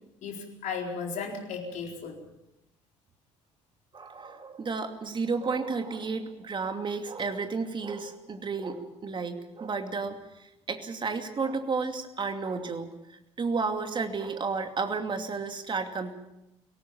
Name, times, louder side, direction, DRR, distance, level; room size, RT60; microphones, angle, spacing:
voice 1, 0.2-2.2, left 5 dB, 50° left, 2 dB, 4.3 m, -35 dB
voice 2, 3.9-12.9 13.4-16.1, right 4 dB, 30° right, 6 dB, 2.6 m, -32 dB
24.5 x 18.0 x 7.2 m, 0.90 s
figure-of-eight pair, 55°, 15 cm